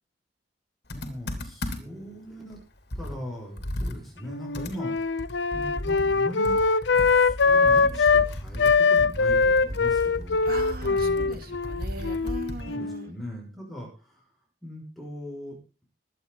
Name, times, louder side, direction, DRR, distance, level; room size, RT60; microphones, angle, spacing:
Computer keyboard, 0.9-2.1 2.5-2.6 2.9-12.8, left 1 dB, 65° left, 3.0 m, -36 dB
voice 1, 0.9-2.6 2.9-5.2 5.5-10.5 10.8-11.4 12.6-14.3 14.6-15.6, equal, ahead, -3 dB, 6.2 m, -40 dB
Wind instrument woodwind instrument, 4.3-8.3 8.6-13.1, left 4 dB, 80° left, 0.7 m, -22 dB
voice 2, 10.5-13.1, right 2 dB, 60° right, 7 dB, 2.3 m, -39 dB
22.5 x 9.1 x 4.1 m, 0.33 s
head